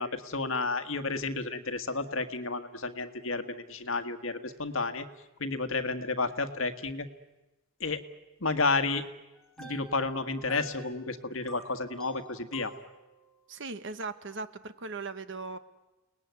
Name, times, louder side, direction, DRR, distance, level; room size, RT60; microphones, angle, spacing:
voice 1, 0.0-5.0 5.4-7.1 7.8-8.0 8.4-9.0 9.6-12.7, left 3 dB, 70° left, 9 dB, 1.7 m, -31 dB
sound 1, 9.4-13.3, equal, 5° left, 4.9 m, -50 dB
voice 2, 13.5-15.6, right 3 dB, 60° right, 12 dB, 1.3 m, -38 dB
30.0 x 19.5 x 9.6 m, 1.1 s
head